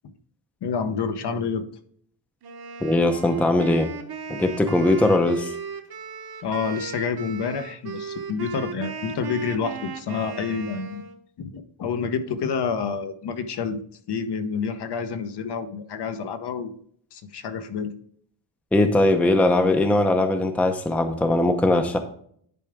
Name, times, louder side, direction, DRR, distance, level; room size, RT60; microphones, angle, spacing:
voice 1, 0.6-1.6 6.4-11.1 11.4-13.8 14.1-16.7 17.1-17.9, left 5 dB, 55° left, 9 dB, 0.9 m, -28 dB
Wind instrument woodwind instrument, 2.4-11.2, right 6 dB, 50° right, 1.1 m, -36 dB
voice 2, 2.8-3.9 4.3-5.5 18.7-22.0, left 2 dB, 5° left, 6 dB, 0.6 m, -20 dB
10.5 x 4.9 x 3.5 m, 0.62 s
wide cardioid pair, 155°, 48 cm